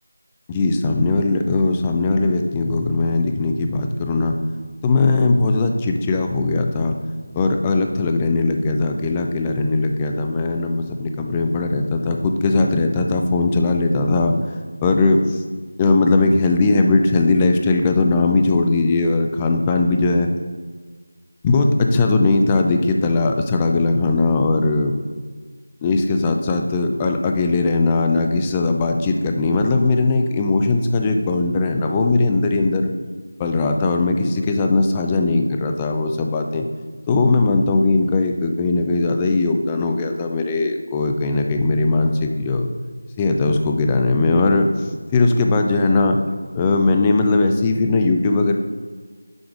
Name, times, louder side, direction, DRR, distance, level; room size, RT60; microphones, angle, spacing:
voice 1, 0.5-4.4 4.8-7.0 7.3-14.3 14.8-15.4 15.8-20.3 21.4-24.9 25.8-32.9 33.4-36.7 37.1-42.7 43.2-46.2 46.6-48.6, left 3 dB, 15° left, 4 dB, 0.3 m, -19 dB
6.1 x 4.9 x 3.6 m, 1.5 s
figure-of-eight pair, 170°, 0 cm